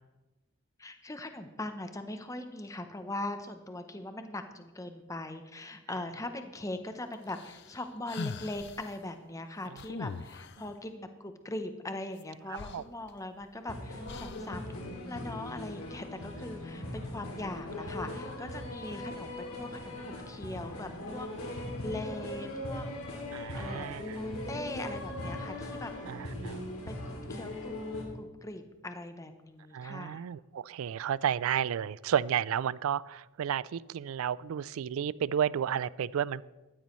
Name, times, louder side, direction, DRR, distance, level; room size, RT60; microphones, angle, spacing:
voice 1, 0.8-22.9 23.5-23.9 24.2-25.9 26.9-27.7 28.1-30.2, left 2 dB, 15° left, 8 dB, 0.7 m, -41 dB
sound 1, 7.3-8.9 9.8-10.7 12.2-12.3 12.5-13.5 14.1-14.6, left 4 dB, 50° left, 0.4 m, -41 dB
sound 2, 13.7-28.0, left 1 dB, 80° left, 2.5 m, -39 dB
voice 2, 23.3-24.2 26.1-26.6 29.7-36.4, right 9 dB, 70° right, 21 dB, 0.3 m, -32 dB
14.5 x 12.5 x 3.1 m, 1.1 s
head